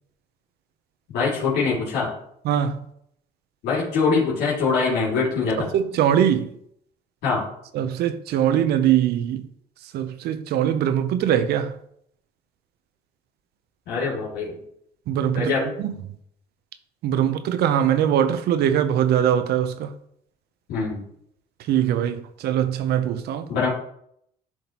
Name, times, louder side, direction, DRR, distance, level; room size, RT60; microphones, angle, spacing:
voice 1, 1.1-2.1 3.6-5.7 7.2-7.4 13.9-14.6 15.3-15.6 20.7-21.0 23.5-23.7, left 4 dB, 85° left, 2.4 m, -23 dB
voice 2, 2.4-2.8 5.6-6.6 7.7-9.5 9.8-11.7 15.1-15.5 15.8-16.2 17.0-19.9 21.6-23.5, right 10 dB, 75° right, 0.6 m, -22 dB
10.5 x 3.7 x 2.9 m
cardioid pair, 110°, 17 cm